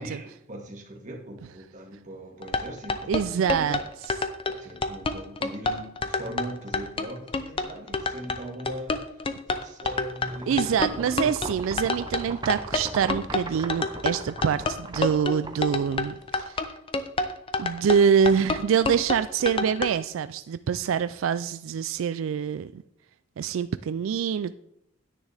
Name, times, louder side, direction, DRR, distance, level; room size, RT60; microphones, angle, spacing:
voice 1, 0.0-3.2 3.5-3.9 4.5-11.3, right 1 dB, 40° right, -1 dB, 1.9 m, -40 dB
sound 1, 2.4-19.9, left 3 dB, 25° left, 0.6 m, -28 dB
voice 2, 3.1-4.1 10.5-16.7 17.6-22.8 23.4-24.5, right 7 dB, 90° right, 13 dB, 0.3 m, -25 dB
sound 2, 10.3-16.4, right 2 dB, 20° right, 0.7 m, -39 dB
9.8 x 9.7 x 3.4 m, 0.75 s
head